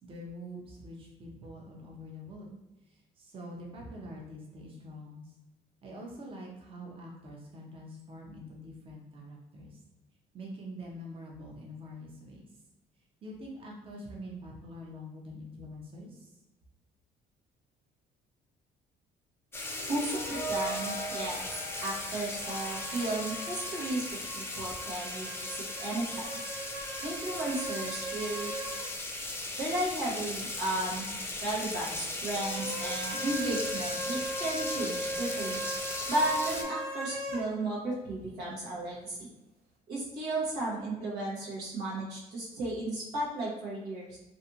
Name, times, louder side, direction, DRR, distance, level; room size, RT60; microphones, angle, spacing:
voice 1, 0.0-2.5 3.2-5.3 5.8-9.8 10.3-12.5 13.2-16.3, equal, 35° right, -2 dB, 0.6 m, -45 dB
sound 1, 19.5-36.6, left 2 dB, 15° left, 0.4 m, -38 dB
sound 2, 19.6-23.5, right 2 dB, 85° left, 0.5 m, -40 dB
voice 2, 19.9-21.5 21.8-24.0 24.3-25.5 25.8-26.4 27.0-28.5 29.6-35.6 36.1-39.3 39.9-44.2, right 2 dB, 90° right, -5 dB, 1.0 m, -34 dB
sound 3, 22.3-28.9 29.2-29.3 32.3-37.5, right 1 dB, 75° right, 0.7 m, -39 dB
2.5 x 2.5 x 2.6 m, 0.99 s
cardioid pair, 110°, 17 cm